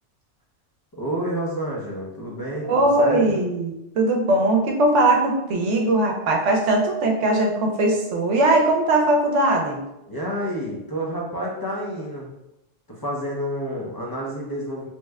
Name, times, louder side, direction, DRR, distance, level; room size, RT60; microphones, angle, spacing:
voice 1, 0.9-3.4 10.1-12.4 12.9-14.9, equal, 40° left, -4 dB, 0.3 m, -29 dB
voice 2, 2.6-9.8, right 2 dB, 75° right, 2 dB, 0.9 m, -20 dB
3.1 x 2.1 x 3.4 m, 0.89 s
omnidirectional pair, 1.3 m